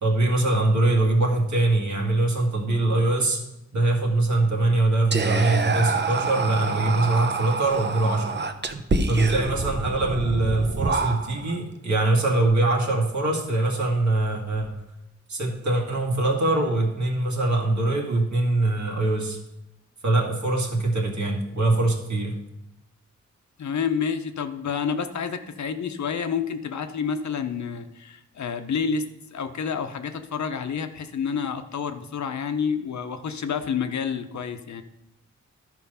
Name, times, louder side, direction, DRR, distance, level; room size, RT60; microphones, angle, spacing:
voice 1, 0.0-3.4 3.7-8.3 9.1-14.7 15.3-19.4 20.0-22.3, right 2 dB, 75° right, 0 dB, 2.0 m, -23 dB
Whispering, 5.1-11.6, right 3 dB, 35° right, 0.8 m, -27 dB
voice 2, 23.6-34.8, left 6 dB, 70° left, 9 dB, 0.8 m, -29 dB
11.5 x 4.7 x 5.5 m, 0.88 s
cardioid pair, 70°, 29 cm